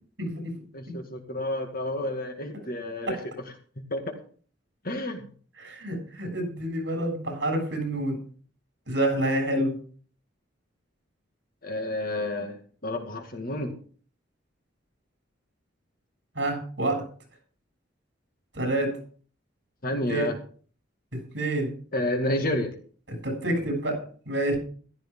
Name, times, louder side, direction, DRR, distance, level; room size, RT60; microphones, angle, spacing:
voice 1, 0.2-0.5 0.9-1.0 3.1-3.2 5.6-8.2 8.9-9.8 16.3-17.1 18.5-19.0 20.1-20.3 21.1-21.7 23.1-24.6, right 1 dB, 65° right, 3 dB, 7.6 m, -28 dB
voice 2, 0.7-3.2 3.9-4.0 4.8-5.3 11.6-12.6 12.8-13.7 19.8-20.3 21.9-22.7, left 1 dB, 50° left, 4 dB, 2.2 m, -30 dB
15.0 x 12.5 x 3.8 m, 0.42 s
head